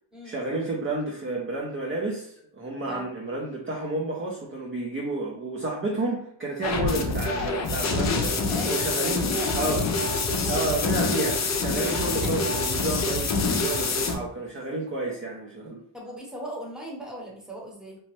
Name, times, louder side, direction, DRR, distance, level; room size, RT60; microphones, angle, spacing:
voice 1, 0.2-8.4 8.7-9.3 9.5-9.8 10.5-15.8, right 2 dB, 25° right, -3 dB, 0.6 m, -30 dB
sound 1, 6.6-14.1, left 3 dB, 35° left, 0.5 m, -26 dB
voice 2, 8.3-9.8 10.3-10.4 15.9-18.0, equal, ahead, -3 dB, 1.0 m, -38 dB
3.0 x 2.1 x 3.0 m, 0.66 s
cardioid pair, 80°, 47 cm